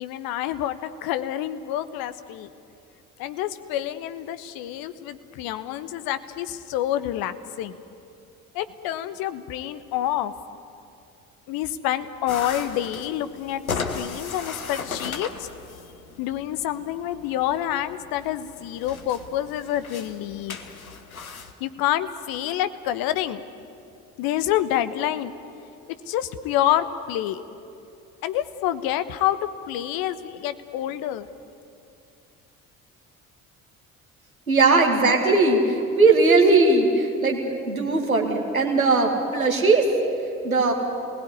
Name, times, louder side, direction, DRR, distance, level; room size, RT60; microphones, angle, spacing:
voice 1, 0.0-2.5 3.2-7.8 8.5-10.3 11.5-15.5 16.2-20.6 21.6-23.4 24.2-25.3 26.1-27.4 28.2-29.4 29.7-31.3, left 12 dB, 55° left, 12 dB, 1.3 m, -27 dB
sound 1, 12.3-21.5, left 5 dB, 85° left, 1.3 m, -36 dB
voice 2, 34.5-39.9 40.4-40.7, right 3 dB, 85° right, 1 dB, 2.3 m, -19 dB
28.0 x 20.0 x 9.6 m, 2.6 s
figure-of-eight pair, 50°, 41 cm